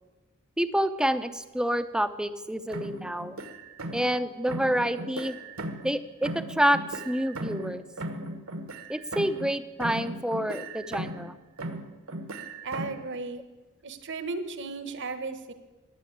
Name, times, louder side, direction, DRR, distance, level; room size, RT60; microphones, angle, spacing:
voice 1, 0.6-3.4 3.9-5.4 5.8-7.8 8.9-11.3, equal, 5° right, 11 dB, 0.6 m, -28 dB
sound 1, 2.7-4.2 4.5-6.0 6.2-9.5 9.8-11.3 11.6-13.1, right 1 dB, 75° right, 1.6 m, -37 dB
voice 2, 12.6-13.4 13.8-15.5, right 3 dB, 55° right, 11 dB, 1.3 m, -35 dB
15.0 x 10.0 x 8.7 m, 1.2 s
head